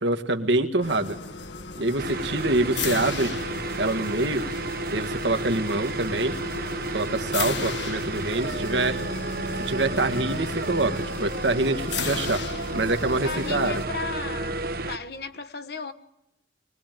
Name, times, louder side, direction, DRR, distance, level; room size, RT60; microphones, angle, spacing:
voice 1, 0.0-1.2 1.8-3.3 3.8-4.5 4.9-6.4 6.9-9.0 9.7-12.4 12.7-13.7, right 2 dB, 75° right, 1.7 m, -25 dB
sound 1, 0.8-13.9, left 4 dB, 75° left, 1.8 m, -36 dB
sound 2, 2.0-15.0, right 2 dB, 50° right, 1.1 m, -32 dB
voice 2, 13.2-14.6 14.9-15.9, left 4 dB, 55° left, 1.3 m, -34 dB
23.5 x 20.0 x 9.2 m
head